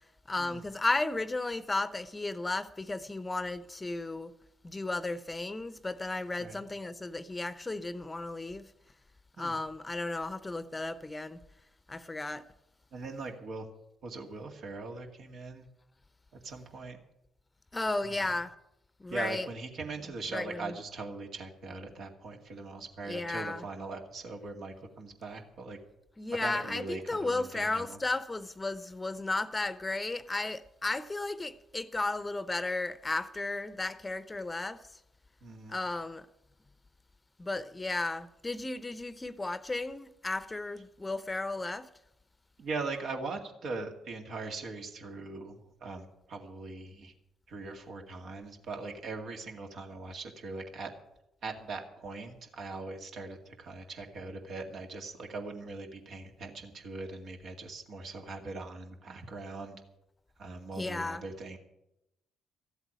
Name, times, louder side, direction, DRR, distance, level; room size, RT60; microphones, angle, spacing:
voice 1, 0.3-4.3 4.7-8.7 9.4-11.4 11.9-12.4 17.7-18.5 19.0-19.5 20.3-20.6 23.1-23.6 26.2-34.8 35.7-36.2 37.4-41.9 60.7-61.2, left 2 dB, 20° left, 0.8 m, -34 dB
voice 2, 12.9-13.7 14.0-15.7 16.3-17.0 18.0-18.4 19.1-25.8 26.3-28.0 35.4-35.8 42.6-47.1 47.5-50.9 51.4-59.8 60.4-61.6, right 3 dB, 60° right, 2.2 m, -41 dB
14.5 x 8.1 x 9.0 m
hypercardioid pair, 50°, 0 cm